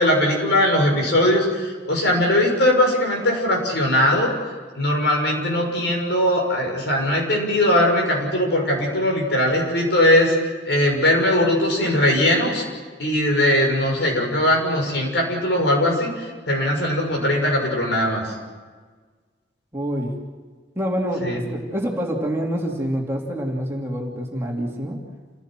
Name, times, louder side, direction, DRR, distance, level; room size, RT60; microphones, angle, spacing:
voice 1, 0.0-4.3 4.7-10.3 10.6-12.6 13.0-18.2 21.2-21.4, left 1 dB, 65° left, 1 dB, 6.6 m, -20 dB
voice 2, 19.7-20.2 20.7-25.0, equal, 15° right, -1 dB, 3.0 m, -26 dB
28.5 x 17.0 x 7.7 m, 1.5 s
head